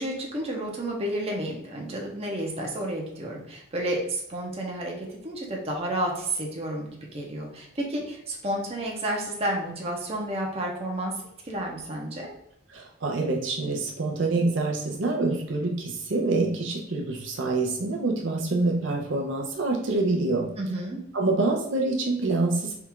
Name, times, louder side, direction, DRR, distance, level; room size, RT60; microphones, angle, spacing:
voice 1, 0.0-11.1 11.4-12.3 20.6-21.0, right 1 dB, 30° right, -1 dB, 0.8 m, -31 dB
voice 2, 12.7-20.5 21.1-22.7, right 3 dB, 70° right, 0 dB, 0.7 m, -26 dB
3.6 x 2.4 x 4.5 m, 0.75 s
head